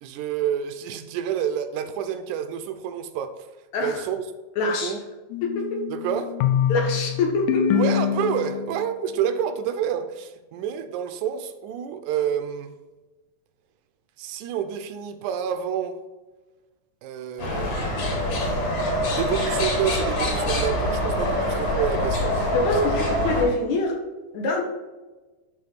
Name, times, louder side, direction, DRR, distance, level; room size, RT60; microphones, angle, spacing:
voice 1, 0.0-3.3 3.8-4.3 4.8-5.0 5.9-6.3 7.7-12.7 14.2-16.0 17.0-17.8 19.1-22.3, right 8 dB, 80° right, 9 dB, 2.0 m, -28 dB
voice 2, 4.6-4.9 5.4-5.8 6.7-7.8 22.5-24.0 24.3-24.6, left 2 dB, 70° left, 0 dB, 2.4 m, -24 dB
sound 1, 5.3-8.9, left 9 dB, 85° left, 2.2 m, -25 dB
sound 2, 17.4-23.4, left 1 dB, 50° left, 2.7 m, -25 dB
11.5 x 4.0 x 4.1 m, 1.2 s
omnidirectional pair, 3.6 m